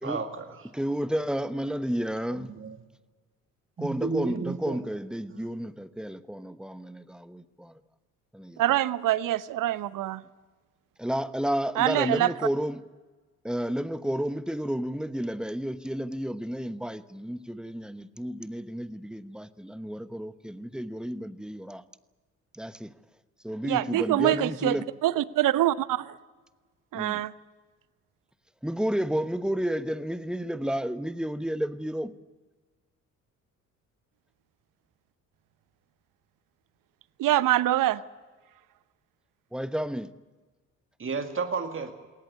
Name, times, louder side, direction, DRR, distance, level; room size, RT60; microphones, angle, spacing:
voice 1, 0.0-0.6 2.3-2.8 3.8-4.8 5.3-5.5 41.0-41.9, right 4 dB, 30° right, 6 dB, 2.1 m, -32 dB
voice 2, 0.7-2.5 3.8-7.8 8.3-8.6 11.0-12.8 13.4-21.8 22.5-22.9 23.4-24.9 26.9-27.2 28.6-32.1 39.5-40.1, equal, ahead, 14 dB, 1.1 m, -31 dB
voice 3, 8.6-10.2 11.8-12.3 23.6-24.8 25.0-26.1 26.9-27.3 37.2-38.0, right 14 dB, 55° right, 18 dB, 0.9 m, -24 dB
21.5 x 18.5 x 9.6 m, 1.3 s
hypercardioid pair, 45°, 40 cm